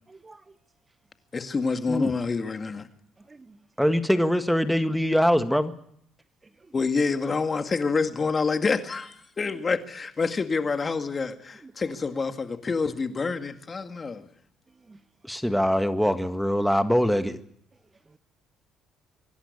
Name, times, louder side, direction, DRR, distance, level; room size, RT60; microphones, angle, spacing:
voice 1, 0.1-0.6 3.2-3.7 6.4-6.7 9.5-9.6 11.6-11.7 13.8-13.9 14.7-15.0 17.7-18.2, right 3 dB, 25° right, 1.0 m, -53 dB
voice 2, 1.3-2.9 6.7-14.3, left 4 dB, 35° left, 2.0 m, -27 dB
voice 3, 3.8-5.7 15.2-17.4, equal, ahead, 1.7 m, -23 dB
25.5 x 11.5 x 9.8 m
supercardioid pair, 75°, 0 cm